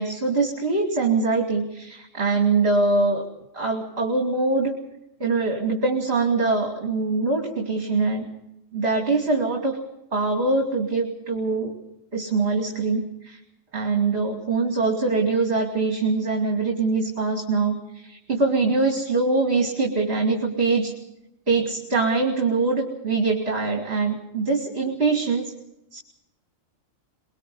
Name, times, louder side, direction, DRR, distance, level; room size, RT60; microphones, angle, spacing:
voice 1, 0.0-3.3 3.5-4.7 5.2-8.3 8.7-9.8 10.1-11.7 12.1-13.4 13.7-20.9 21.5-25.5 25.9-26.0, right 3 dB, 50° right, 2 dB, 3.1 m, -23 dB
23.5 x 23.0 x 5.5 m, 0.84 s
omnidirectional pair, 1.3 m